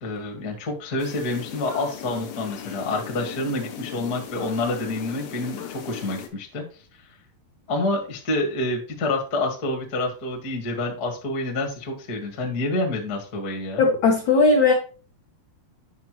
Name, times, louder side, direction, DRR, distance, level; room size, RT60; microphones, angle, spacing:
voice 1, 0.0-6.6 7.7-13.8, left 2 dB, 40° left, 1 dB, 1.4 m, -28 dB
sound 1, 1.0-6.3, left 9 dB, 85° left, 1.5 m, -37 dB
voice 2, 13.8-14.7, left 4 dB, 65° left, -1 dB, 1.8 m, -17 dB
9.4 x 6.0 x 3.1 m, 0.37 s
omnidirectional pair, 4.6 m